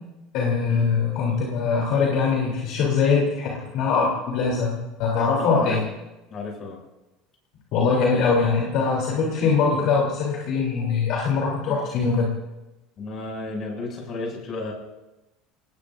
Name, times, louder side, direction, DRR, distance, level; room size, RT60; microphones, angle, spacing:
voice 1, 0.3-5.8 7.7-12.3, left 5 dB, 60° left, -2 dB, 3.5 m, -22 dB
voice 2, 5.4-5.8 6.3-6.8 13.0-14.7, left 2 dB, 40° left, 0 dB, 6.9 m, -32 dB
26.5 x 20.0 x 2.7 m, 1.0 s
supercardioid pair, 135°, 0 cm